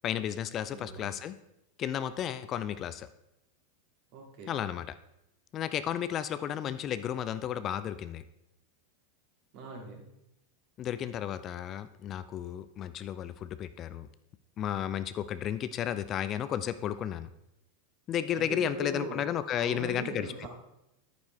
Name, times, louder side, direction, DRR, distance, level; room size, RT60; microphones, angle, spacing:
voice 1, 0.0-1.4 1.8-3.1 4.5-4.9 5.5-8.2 10.8-14.1 14.6-17.3 18.1-20.5, left 10 dB, 35° left, 13 dB, 0.4 m, -33 dB
voice 2, 0.6-1.1 4.1-4.7 9.5-10.0 18.3-19.2 19.6-20.5, right 2 dB, 50° right, 0 dB, 2.7 m, -40 dB
10.5 x 9.3 x 3.4 m, 0.87 s
figure-of-eight pair, 90°, 0 cm